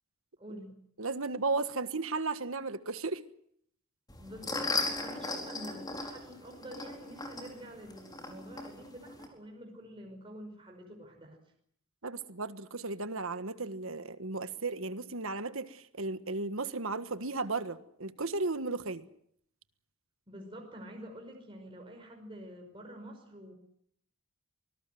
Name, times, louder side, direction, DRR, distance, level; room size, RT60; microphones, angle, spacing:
voice 1, 0.4-0.7 4.2-11.4 20.3-23.5, equal, 25° right, 1 dB, 5.3 m, -47 dB
voice 2, 1.0-3.2 12.0-19.0, right 3 dB, 65° right, 12 dB, 1.5 m, -35 dB
sound 1, 4.1-9.3, left 3 dB, 20° left, 4.4 m, -37 dB
25.5 x 20.0 x 7.8 m, 0.67 s
head